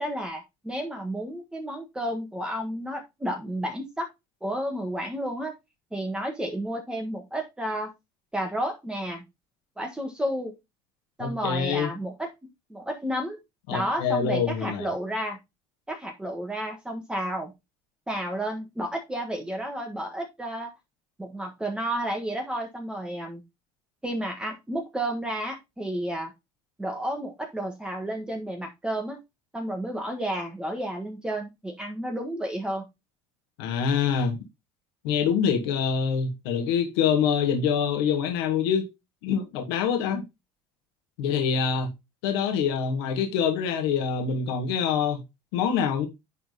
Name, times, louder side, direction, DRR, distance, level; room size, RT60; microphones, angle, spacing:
voice 1, 0.0-4.1 4.4-5.5 5.9-7.9 8.3-9.2 9.8-10.5 11.2-12.3 12.7-13.4 13.7-15.4 15.9-17.5 18.1-20.7 21.2-23.4 24.0-26.3 26.8-29.2 29.5-32.8, right 1 dB, 5° right, 1.4 m, -31 dB
voice 2, 11.2-11.9 13.7-14.9 33.6-34.4 35.0-38.8 39.2-40.2 41.2-41.9 42.2-45.2 45.5-46.1, left 7 dB, 85° left, 2.0 m, -25 dB
10.5 x 3.9 x 4.0 m
cardioid pair, 130°, 13 cm